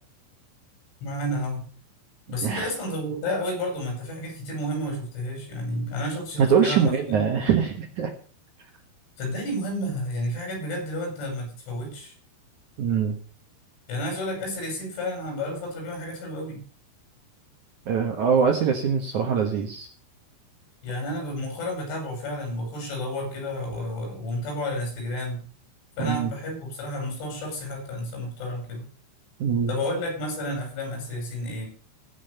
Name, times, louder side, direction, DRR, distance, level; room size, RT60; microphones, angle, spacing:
voice 1, 1.0-1.7 2.3-7.2 9.2-12.1 13.9-16.6 20.8-25.4 26.0-28.9 29.7-31.7, left 1 dB, 85° left, 1 dB, 8.3 m, -31 dB
voice 2, 6.4-8.1 12.8-13.2 17.9-19.9 26.0-26.3 29.4-29.7, right 7 dB, 70° right, 3 dB, 1.9 m, -23 dB
16.5 x 6.4 x 6.6 m, 0.43 s
omnidirectional pair, 5.4 m